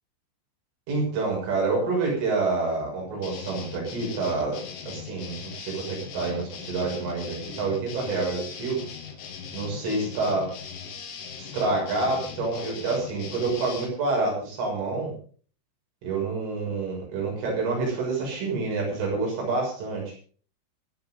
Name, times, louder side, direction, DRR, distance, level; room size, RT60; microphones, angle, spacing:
voice 1, 0.9-4.6 4.9-8.8 9.5-10.5 11.4-15.1 16.0-20.1, right 3 dB, 75° right, -2 dB, 8.9 m, -28 dB
sound 1, 3.2-13.9, left 6 dB, 65° left, 4.3 m, -39 dB
26.5 x 9.2 x 3.9 m, 0.43 s
omnidirectional pair, 5.6 m